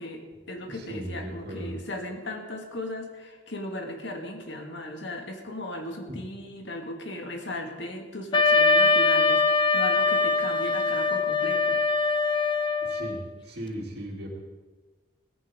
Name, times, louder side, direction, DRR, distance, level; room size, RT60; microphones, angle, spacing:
voice 1, 0.0-11.8, left 1 dB, 65° left, 3 dB, 1.9 m, -37 dB
voice 2, 0.7-1.7 12.8-14.4, right 1 dB, 55° right, -2 dB, 3.1 m, -37 dB
Wind instrument woodwind instrument, 8.3-13.2, left 4 dB, 25° left, 0.5 m, -22 dB
17.5 x 14.5 x 3.7 m, 1.3 s
head